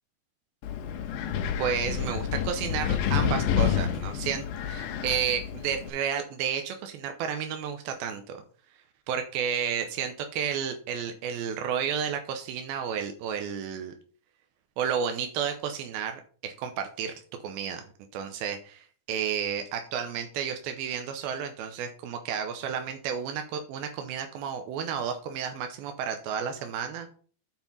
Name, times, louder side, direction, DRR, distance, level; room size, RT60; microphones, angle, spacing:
Wind, 0.6-5.9, left 8 dB, 75° left, 2.5 m, -29 dB
voice 1, 1.6-8.4 9.1-14.0 14.8-17.1 17.4-17.9 18.1-27.1, right 7 dB, 90° right, 5 dB, 2.7 m, -32 dB
7.6 x 4.5 x 5.4 m, 0.43 s
omnidirectional pair, 4.2 m